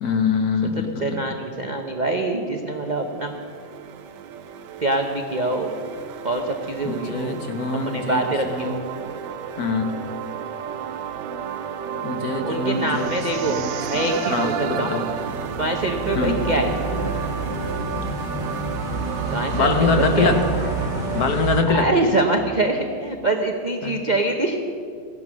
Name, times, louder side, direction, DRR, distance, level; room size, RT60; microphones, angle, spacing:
voice 1, 0.0-1.2 6.8-8.2 8.5-8.7 9.6-9.9 12.0-13.1 13.3-15.0 16.1-16.4 19.5-20.4 21.1-21.9 23.8-23.9, left 4 dB, 55° left, 6 dB, 1.4 m, -24 dB
voice 2, 0.8-3.4 4.8-5.7 6.2-7.3 7.8-8.8 12.4-13.6 13.9-15.0 15.6-16.7 19.3-20.3 21.7-24.6, right 2 dB, 45° right, 3 dB, 0.5 m, -24 dB
sound 1, 2.0-21.3, right 7 dB, 70° right, 1.3 m, -32 dB
sound 2, 14.7-21.6, right 2 dB, 25° left, 1.5 m, -29 dB
15.5 x 11.0 x 6.2 m, 2.3 s
omnidirectional pair, 2.1 m